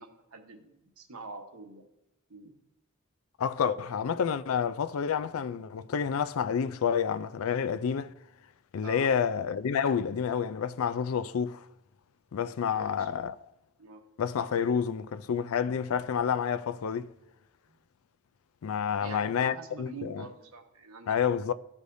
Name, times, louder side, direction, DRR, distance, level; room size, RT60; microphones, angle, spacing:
voice 1, 0.0-1.8 2.3-2.6 8.8-9.1 12.7-13.1 13.8-14.0 17.7-17.8 19.0-21.2, right 4 dB, 85° right, 1.1 m, -45 dB
voice 2, 3.4-8.1 8.7-11.6 12.3-13.4 14.2-17.1 18.6-20.3 21.1-21.5, left 7 dB, 75° left, 0.4 m, -29 dB
14.0 x 4.9 x 2.6 m
head